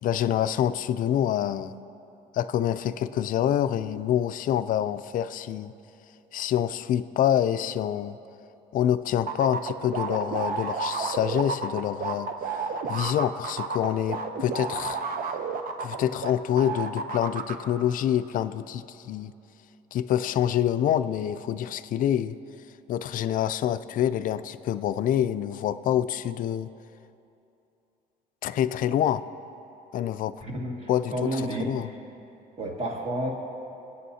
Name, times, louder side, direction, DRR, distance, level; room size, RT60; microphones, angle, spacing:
voice 1, 0.0-1.7 2.3-5.7 6.3-8.2 8.7-12.3 12.9-15.0 15.8-19.3 19.9-22.4 22.9-26.7 28.4-29.2 29.9-30.4 30.9-31.9, left 10 dB, 55° left, 13 dB, 0.4 m, -26 dB
sound 1, 9.3-16.3 16.6-17.5, right 5 dB, 55° right, 0.8 m, -31 dB
voice 2, 30.4-31.7 32.6-33.3, right 1 dB, 40° right, -1 dB, 1.9 m, -30 dB
24.0 x 8.7 x 2.8 m, 2.8 s
cardioid pair, 110°, 17 cm